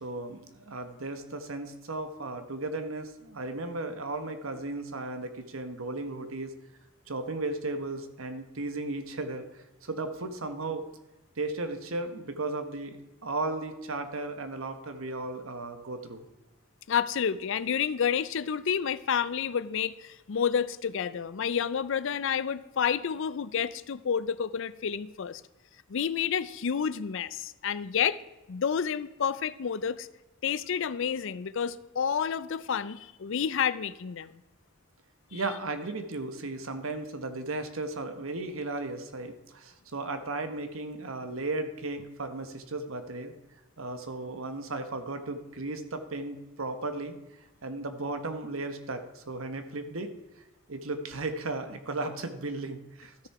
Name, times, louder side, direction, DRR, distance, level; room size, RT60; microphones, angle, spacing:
voice 1, 0.0-6.5 7.1-10.8 11.4-16.3 35.3-43.3 43.8-47.1 47.6-50.1 50.7-53.3, right 2 dB, 80° right, 8 dB, 1.2 m, -35 dB
voice 2, 16.9-25.4 25.9-28.2 28.5-30.1 30.4-34.4 35.3-35.4, left 7 dB, 65° left, 16 dB, 0.5 m, -29 dB
13.0 x 6.6 x 4.7 m, 1.0 s
head